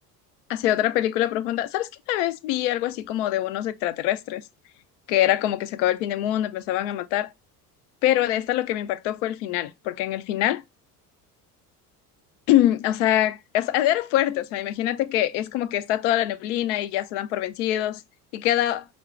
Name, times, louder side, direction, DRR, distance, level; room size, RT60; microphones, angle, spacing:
voice 1, 0.5-4.4 5.1-7.3 8.0-10.6 12.5-18.0 18.3-18.9, left 13 dB, 50° left, 0.5 m, -24 dB
5.0 x 2.2 x 3.0 m
figure-of-eight pair, 60°, 47 cm